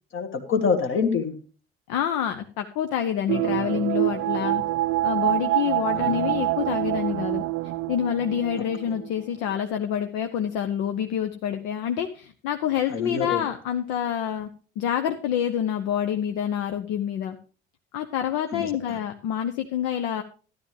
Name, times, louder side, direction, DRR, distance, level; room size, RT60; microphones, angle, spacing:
voice 1, 0.1-1.4 5.9-6.4 8.6-9.0 12.9-13.5 18.5-19.0, left 5 dB, 45° left, 7 dB, 1.7 m, -27 dB
voice 2, 1.9-4.6 5.0-7.4 7.9-14.5 14.8-17.4 17.9-20.2, left 9 dB, 60° left, 7 dB, 0.8 m, -27 dB
sound 1, 3.3-9.2 9.5-9.6, right 16 dB, 50° right, 0.5 m, -26 dB
12.5 x 11.0 x 3.3 m, 0.38 s
figure-of-eight pair, 55°, 30 cm